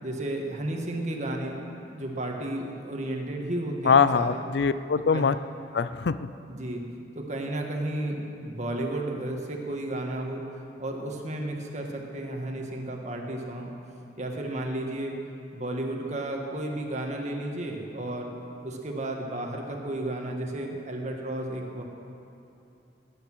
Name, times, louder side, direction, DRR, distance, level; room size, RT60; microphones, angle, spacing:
voice 1, 0.0-4.4 5.1-5.3 6.5-6.8 7.2-10.4 10.8-13.7 14.2-15.1 15.5-18.3 18.6-21.8, right 1 dB, 40° right, 1 dB, 1.8 m, -33 dB
voice 2, 3.8-5.3 5.7-6.2, left 6 dB, 70° left, 14 dB, 0.5 m, -22 dB
19.0 x 9.7 x 6.2 m, 2.8 s
head